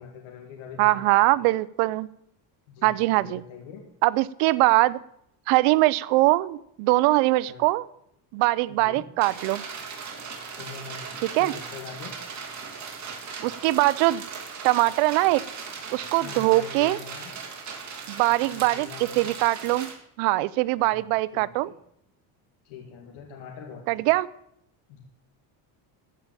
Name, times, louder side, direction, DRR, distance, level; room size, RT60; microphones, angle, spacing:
voice 1, 0.0-1.4 2.7-3.8 7.5-7.7 8.7-9.0 10.6-12.1 16.2-17.3 18.5-19.2 20.8-21.0 21.3-21.7 22.6-24.1 24.9-25.0, left 6 dB, 80° left, 0 dB, 2.5 m, -43 dB
voice 2, 0.8-2.1 2.8-3.4 4.0-5.0 5.5-7.8 8.3-9.6 11.3-11.5 13.4-14.2 14.6-15.4 15.9-17.0 18.1-19.9 20.2-21.7 23.9-24.3, right 19 dB, 85° right, 19 dB, 0.7 m, -22 dB
sound 1, 9.2-19.9, right 5 dB, 35° right, 3.0 m, -38 dB
14.5 x 5.7 x 8.9 m, 0.75 s
cardioid pair, 130°, 49 cm